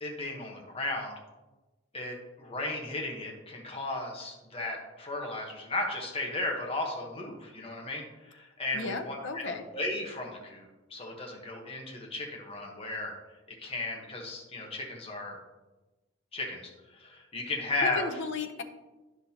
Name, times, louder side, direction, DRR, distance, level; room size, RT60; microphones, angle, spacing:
voice 1, 0.0-1.1 1.9-13.1 13.6-15.4 16.3-18.2, left 2 dB, 30° left, 0 dB, 1.1 m, -35 dB
voice 2, 8.7-9.7 17.8-18.6, left 3 dB, 65° left, 6 dB, 0.7 m, -35 dB
10.5 x 6.1 x 2.8 m, 1.1 s
head